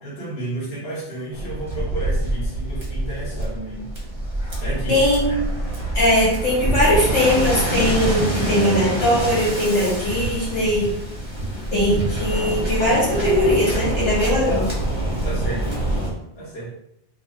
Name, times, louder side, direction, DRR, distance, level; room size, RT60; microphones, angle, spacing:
voice 1, 0.0-3.9 4.6-5.4 15.2-15.9 16.4-16.7, right 2 dB, 55° left, -7 dB, 1.1 m, -32 dB
Waves surf, 1.3-16.1, right 1 dB, 30° right, 0.7 m, -25 dB
voice 2, 4.9-5.2 5.9-10.9 11.7-14.7, left 1 dB, 80° left, -7 dB, 1.6 m, -20 dB
2.4 x 2.4 x 3.2 m, 0.77 s
omnidirectional pair, 1.2 m